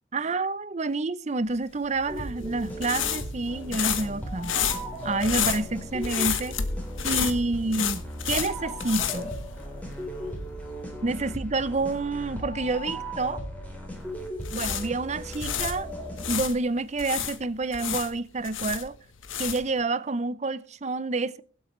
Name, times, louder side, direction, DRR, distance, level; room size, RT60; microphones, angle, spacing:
voice 1, 0.1-4.5 5.0-6.6 7.0-9.3 11.0-13.4 14.5-15.9 16.3-19.0 19.4-21.4, right 3 dB, 35° right, 0.6 m, -28 dB
sound 1, 1.9-10.0 10.3-10.5 14.2-16.5 17.0-19.8, left 8 dB, 85° left, 1.3 m, -30 dB
sound 2, 2.1-16.4, equal, 10° left, 3.7 m, -37 dB
23.5 x 8.0 x 3.2 m
head